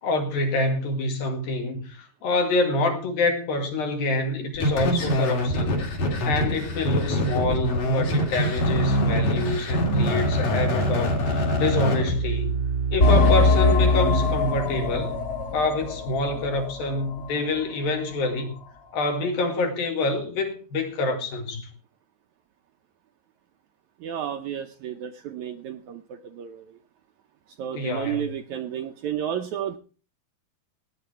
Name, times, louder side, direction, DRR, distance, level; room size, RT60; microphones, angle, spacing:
voice 1, 0.0-5.9 6.3-12.6 12.9-15.2 15.5-18.5 18.9-21.7 27.7-28.3, left 2 dB, 80° left, 4.0 m, -26 dB
sound 1, 4.5-13.3, equal, 65° left, 4.6 m, -24 dB
sound 2, 13.0-17.3 17.6-17.7 18.3-18.4, left 3 dB, 30° left, 2.0 m, -22 dB
voice 2, 24.0-26.0 26.3-26.6 27.6-29.8, right 10 dB, 75° right, 1.7 m, -31 dB
17.0 x 9.1 x 4.5 m
omnidirectional pair, 4.1 m